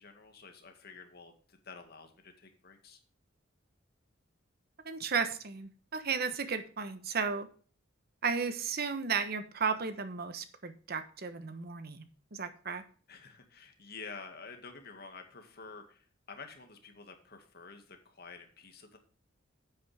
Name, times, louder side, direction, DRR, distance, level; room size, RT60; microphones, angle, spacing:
voice 1, 0.0-3.0 13.1-19.0, left 4 dB, 55° left, 5 dB, 2.1 m, -50 dB
voice 2, 4.8-7.5 8.2-12.8, right 5 dB, 50° right, 10 dB, 1.1 m, -34 dB
10.5 x 8.6 x 3.6 m, 0.40 s
head